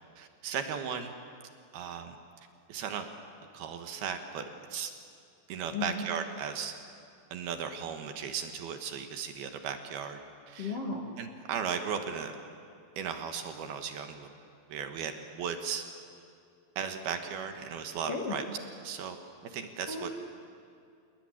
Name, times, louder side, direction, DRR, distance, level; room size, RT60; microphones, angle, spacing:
voice 1, 0.2-1.1 1.7-2.2 2.7-3.1 3.5-4.4 4.7-4.9 5.5-6.7 7.3-10.2 10.5-10.8 11.2-12.3 13.0-14.3 14.7-15.8 16.8-18.4 18.8-19.2 19.4-20.1, right 7 dB, 70° right, 6 dB, 3.0 m, -36 dB
voice 2, 5.7-6.1 10.6-11.1 18.1-18.4 19.9-20.1, left 4 dB, 45° left, 1 dB, 2.1 m, -34 dB
28.5 x 19.5 x 9.8 m, 2.4 s
omnidirectional pair, 5.0 m